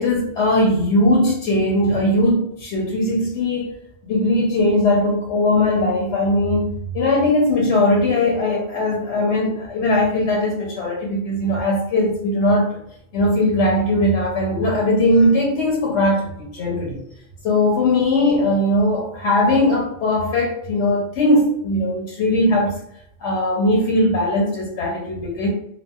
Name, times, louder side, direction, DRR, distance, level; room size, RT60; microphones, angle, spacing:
voice 1, 0.0-3.7 4.0-12.8 13.1-17.0 17.4-22.8 23.2-25.5, left 1 dB, 75° left, -2 dB, 0.9 m, -19 dB
2.7 x 2.2 x 2.3 m, 0.75 s
omnidirectional pair, 1.2 m